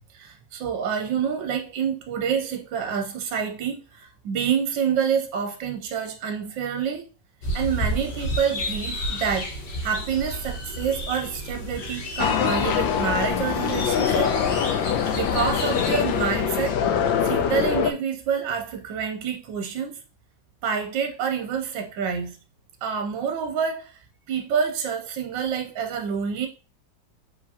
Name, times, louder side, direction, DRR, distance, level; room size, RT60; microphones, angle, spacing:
voice 1, 0.1-7.0 7.5-9.5 9.8-14.3 15.1-16.8 17.2-20.0 20.6-22.4 22.8-23.9 24.3-26.5, right 7 dB, 75° right, 1.4 m, -27 dB
sound 1, 7.4-16.3, equal, 65° left, 1.7 m, -32 dB
sound 2, 12.2-17.9, left 8 dB, 80° left, 1.3 m, -23 dB
4.9 x 3.8 x 2.8 m
omnidirectional pair, 2.1 m